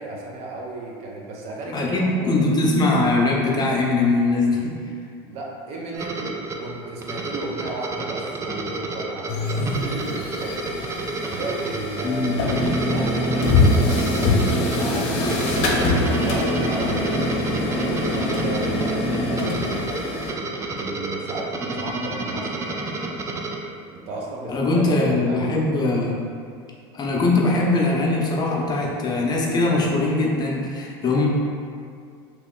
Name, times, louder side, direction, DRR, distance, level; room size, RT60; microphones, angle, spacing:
voice 1, 0.0-2.4 5.2-10.7 11.3-20.1 20.5-23.0 23.9-25.5, right 2 dB, 50° right, -2 dB, 0.7 m, -34 dB
voice 2, 1.7-4.7 12.0-12.3 24.5-26.2 26.9-31.3, left 2 dB, 30° left, -2 dB, 0.7 m, -21 dB
sound 1, 5.9-23.6, right 2 dB, 20° right, 0.4 m, -31 dB
sound 2, 9.3-20.3, left 2 dB, 65° left, 0.7 m, -23 dB
3.0 x 2.8 x 3.7 m, 2.2 s
supercardioid pair, 110°, 14 cm